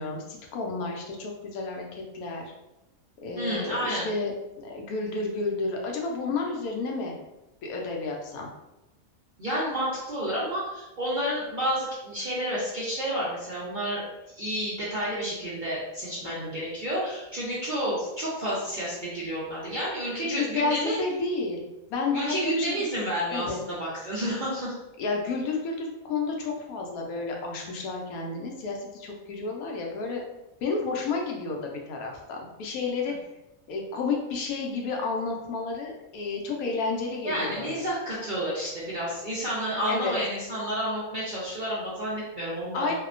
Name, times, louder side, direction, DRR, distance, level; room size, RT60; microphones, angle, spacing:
voice 1, 0.0-2.5 3.2-4.3 4.6-7.2 7.6-8.5 16.2-16.5 20.2-22.8 23.3-23.6 25.0-30.2 30.6-33.1 33.7-37.8 39.9-40.1 42.7-42.9, left 4 dB, 90° left, 0 dB, 1.1 m, -31 dB
voice 2, 3.4-4.1 9.4-14.1 14.4-21.0 22.1-24.7 37.2-42.9, equal, 60° right, -8 dB, 0.5 m, -30 dB
2.8 x 2.1 x 2.4 m, 0.96 s
omnidirectional pair, 1.5 m